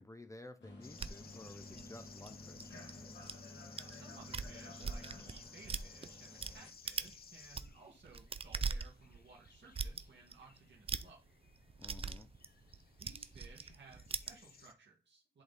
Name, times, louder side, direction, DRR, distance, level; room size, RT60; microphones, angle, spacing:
voice 1, 0.0-2.8 11.8-12.3, left 2 dB, 15° left, 8 dB, 0.6 m, -53 dB
sound 1, 0.6-6.7, left 2 dB, 80° left, 2.3 m, -53 dB
sound 2, 0.8-14.7, left 6 dB, 60° left, 0.7 m, -58 dB
sound 3, 1.0-3.3 3.8-3.9 4.2-6.5 6.9-7.2 7.4-14.3, right 5 dB, 30° right, 0.4 m, -41 dB
voice 2, 3.8-11.2 13.0-15.4, right 4 dB, 80° right, -3 dB, 1.6 m, -59 dB
11.0 x 3.8 x 4.0 m, 0.32 s
wide cardioid pair, 155°, 18 cm